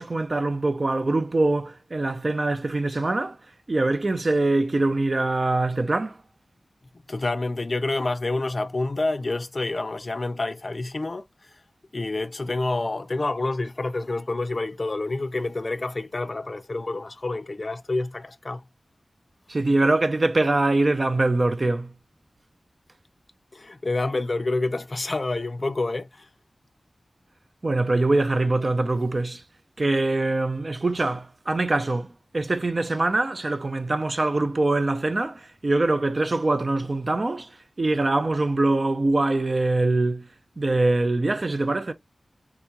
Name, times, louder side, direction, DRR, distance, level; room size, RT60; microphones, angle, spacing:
voice 1, 0.0-3.4 3.7-6.2 19.5-21.9 27.6-29.4 29.8-37.5 37.8-40.3 40.6-41.9, right 2 dB, 45° right, 0.4 m, -23 dB
voice 2, 6.9-11.2 11.9-18.6 23.5-26.3, left 2 dB, 45° left, 0.4 m, -28 dB
3.5 x 2.8 x 2.3 m
wide cardioid pair, 80°, 0 cm